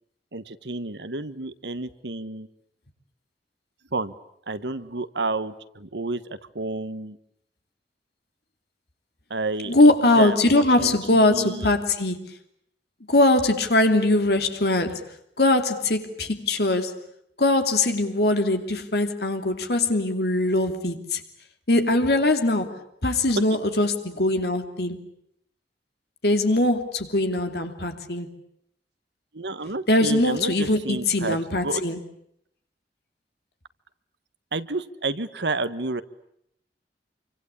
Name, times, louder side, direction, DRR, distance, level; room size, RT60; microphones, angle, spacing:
voice 1, 0.3-2.5 3.9-4.1 4.5-7.2 9.3-9.7 10.0-11.7 29.3-31.8 34.5-36.0, right 3 dB, 80° right, 1.4 m, -30 dB
voice 2, 9.7-12.3 13.1-15.0 15.4-17.0 17.4-21.2 21.7-25.0 26.2-28.4 29.9-32.0, left 2 dB, 65° left, 2.9 m, -21 dB
27.5 x 25.0 x 8.5 m
head